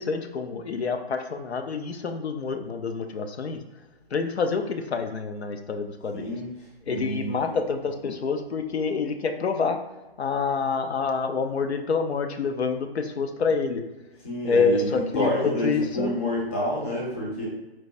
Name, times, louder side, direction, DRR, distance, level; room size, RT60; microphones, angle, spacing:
voice 1, 0.0-3.6 4.1-6.4 6.9-9.8 10.2-13.8 14.4-16.1, left 5 dB, 90° left, 7 dB, 0.5 m, -27 dB
voice 2, 6.1-6.5 6.9-7.5 14.2-17.5, equal, 15° left, -4 dB, 0.4 m, -28 dB
4.4 x 2.1 x 2.5 m, 1.1 s
figure-of-eight pair, 140°, 31 cm